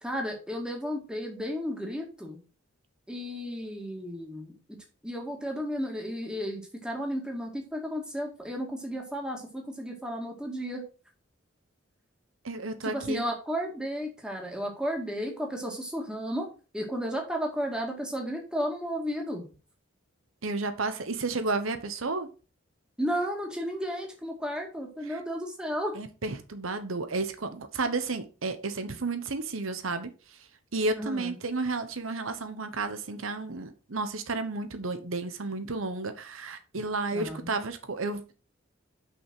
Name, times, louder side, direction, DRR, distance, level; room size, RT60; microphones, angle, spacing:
voice 1, 0.0-2.4 3.1-4.5 5.0-10.8 12.8-16.5 16.7-19.5 23.0-26.0 30.9-31.3 37.1-37.5, equal, 5° right, 2.0 m, -33 dB
voice 2, 12.4-13.3 20.4-22.3 25.1-25.2 25.9-30.1 30.7-38.3, right 3 dB, 80° right, 1.0 m, -32 dB
6.2 x 5.7 x 6.1 m
head